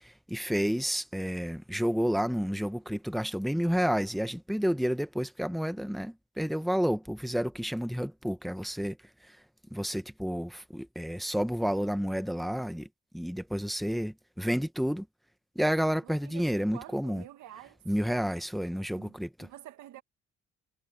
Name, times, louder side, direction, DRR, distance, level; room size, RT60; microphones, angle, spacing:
voice 1, 0.0-9.0 9.2-9.4 9.7-12.9 13.1-15.1 15.5-17.2 17.8-19.5, equal, ahead, 1.4 m, -30 dB
voice 2, 16.0-17.8 18.9-19.1 19.4-20.0, right 13 dB, 75° right, 2.0 m, -48 dB
supercardioid pair, 70°, 29 cm